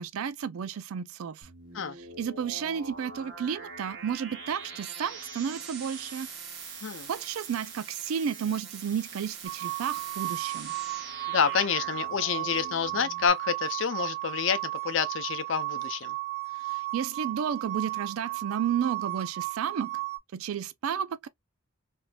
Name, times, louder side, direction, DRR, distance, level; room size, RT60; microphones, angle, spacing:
voice 1, 0.0-1.5 2.0-6.3 7.1-10.8 16.6-19.9 20.3-21.3, right 8 dB, 90° right, 0.4 m, -32 dB
sound 1, 1.4-13.3, right 4 dB, 55° right, 1.2 m, -43 dB
sound 2, 9.4-20.2, right 20 dB, 35° right, 0.6 m, -35 dB
voice 2, 11.3-16.1, left 6 dB, 65° left, 0.5 m, -28 dB
3.3 x 2.6 x 2.2 m
head